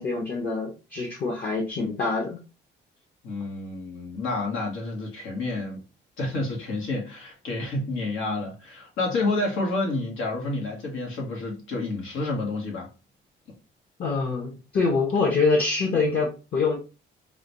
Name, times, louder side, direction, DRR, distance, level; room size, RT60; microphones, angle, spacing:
voice 1, 0.0-2.4 14.0-16.8, left 4 dB, 50° left, 1.0 m, -25 dB
voice 2, 3.2-5.8 6.2-12.9, left 2 dB, 85° left, 1.2 m, -29 dB
3.9 x 2.2 x 2.9 m
cardioid pair, 90°, 20 cm